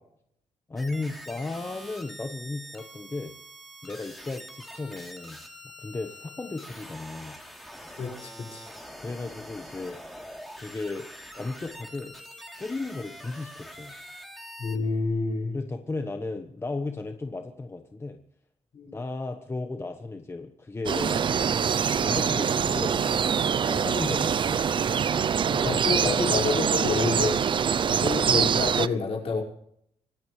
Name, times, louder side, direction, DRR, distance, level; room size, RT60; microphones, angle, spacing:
voice 1, 0.7-3.3 3.8-5.4 5.8-7.4 9.0-10.0 10.6-11.1 11.3-12.2 12.6-13.9 15.5-18.2 18.9-21.2 22.0-23.3 23.7-24.6, left 3 dB, 20° left, 5 dB, 1.2 m, -35 dB
sound 1, 0.8-14.8, equal, ahead, 3.3 m, -44 dB
voice 2, 8.0-8.7 14.6-15.6 18.7-19.0 25.5-27.4 27.8-29.4, left 4 dB, 55° left, -2 dB, 5.7 m, -28 dB
sound 2, 20.9-28.9, right 7 dB, 40° right, 0.5 m, -24 dB
25.5 x 14.5 x 3.3 m, 0.71 s
cardioid pair, 125°, 12 cm